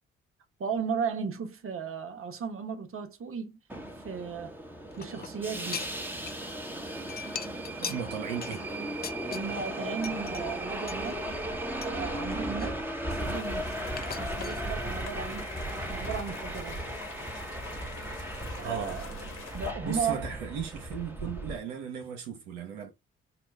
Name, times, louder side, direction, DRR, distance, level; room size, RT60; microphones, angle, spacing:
voice 1, 0.6-3.6 4.0-4.5 5.0-5.9 9.3-11.3 11.8-13.8 14.2-15.5 15.9-16.8 18.6-19.0 19.5-20.3, right 6 dB, 45° right, 1.1 m, -35 dB
Subway metro underground, 3.7-21.6, right 1 dB, 5° right, 1.2 m, -36 dB
sound 1, 4.9-6.6 6.8-9.7 10.0-10.4 10.9-12.0 12.3-13.5 14.0-14.6, left 7 dB, 30° left, 0.5 m, -41 dB
voice 2, 7.8-8.6 18.6-19.0 19.8-22.9, right 7 dB, 80° right, 0.8 m, -36 dB
sound 2, 13.1-19.7, left 4 dB, 70° left, 1.6 m, -45 dB
5.1 x 2.3 x 3.1 m
hypercardioid pair, 45°, 31 cm